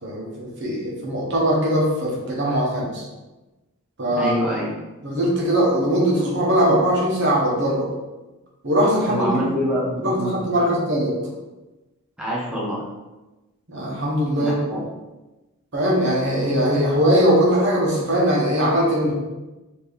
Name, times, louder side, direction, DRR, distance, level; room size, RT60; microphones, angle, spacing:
voice 1, 0.0-3.0 4.0-4.3 5.0-7.9 8.6-9.4 10.0-11.1 13.7-14.6 15.7-19.1, equal, 55° right, -4 dB, 1.2 m, -20 dB
voice 2, 4.2-4.7 9.1-10.7 12.2-12.8 14.3-14.8, equal, 5° right, -7 dB, 0.7 m, -26 dB
4.0 x 2.9 x 3.5 m, 1.1 s
head